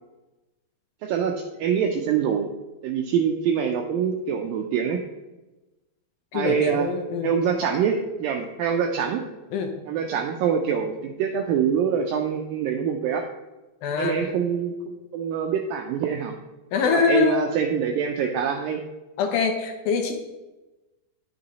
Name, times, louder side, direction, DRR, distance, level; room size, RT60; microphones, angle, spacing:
voice 1, 1.0-2.5 2.8-5.0 6.3-6.9 7.2-9.2 9.9-13.3 14.0-16.4 16.8-18.8, right 7 dB, 85° right, 3 dB, 2.0 m, -25 dB
voice 2, 6.3-7.3 9.5-9.7 13.8-14.3 16.7-17.4 19.2-20.1, left 6 dB, 75° left, 5 dB, 2.3 m, -24 dB
10.5 x 6.3 x 4.1 m, 1.1 s
omnidirectional pair, 4.7 m